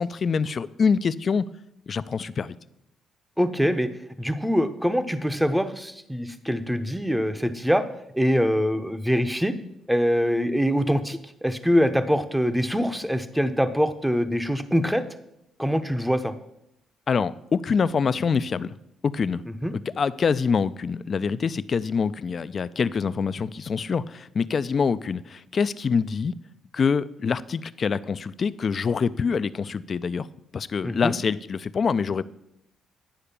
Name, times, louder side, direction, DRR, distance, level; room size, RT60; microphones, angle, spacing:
voice 1, 0.0-1.4 1.9-2.6 17.1-18.7 19.0-19.4 20.0-26.3 26.7-30.3 30.5-32.2, left 5 dB, 45° left, 16 dB, 0.4 m, -25 dB
voice 2, 3.4-3.9 4.2-7.8 8.1-9.5 9.9-15.0 15.6-16.3 19.5-19.8 30.8-31.2, equal, 5° right, 10 dB, 0.7 m, -24 dB
10.0 x 4.9 x 6.8 m, 0.81 s
cardioid pair, 90°, 0 cm